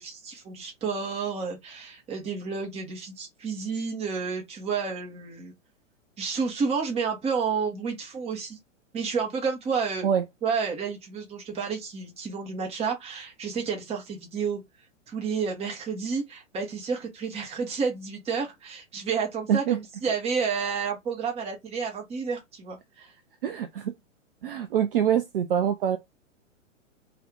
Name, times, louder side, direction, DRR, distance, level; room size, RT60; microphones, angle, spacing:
voice 1, 0.0-5.5 6.2-8.6 8.9-10.1 10.4-14.6 15.1-23.1, right 5 dB, 15° right, 0.9 m, -30 dB
voice 2, 23.4-23.9 24.4-26.0, right 9 dB, 45° right, 0.5 m, -24 dB
2.7 x 2.4 x 3.5 m
figure-of-eight pair, 105°, 39 cm